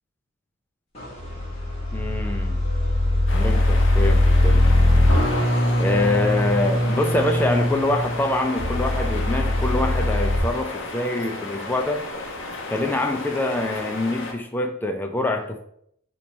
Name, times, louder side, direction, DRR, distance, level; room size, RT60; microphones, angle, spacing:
sound 1, 1.0-10.4, left 1 dB, 25° left, 1.4 m, -21 dB
voice 1, 1.9-2.6 3.3-4.7 5.8-12.0 12.7-15.6, left 2 dB, 10° left, 4 dB, 0.3 m, -25 dB
sound 2, 3.3-14.3, left 2 dB, 55° left, 0.7 m, -33 dB
4.1 x 3.0 x 4.4 m, 0.71 s
head